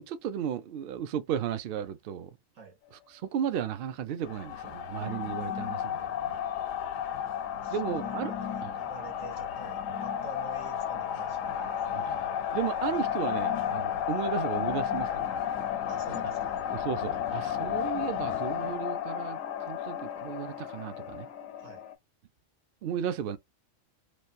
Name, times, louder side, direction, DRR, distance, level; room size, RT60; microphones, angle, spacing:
voice 1, 0.0-2.4 3.1-6.3 7.7-8.3 8.6-8.7 11.9-12.2 12.5-15.3 16.7-21.3 22.8-23.4, right 9 dB, 65° right, 0.6 m, -34 dB
sound 1, 4.2-21.9, left 9 dB, 85° left, 1.0 m, -33 dB
voice 2, 6.1-6.5 7.5-12.1 15.9-16.6 21.6-21.9, right 4 dB, 90° right, 1.6 m, -49 dB
3.1 x 2.2 x 2.5 m
omnidirectional pair, 1.3 m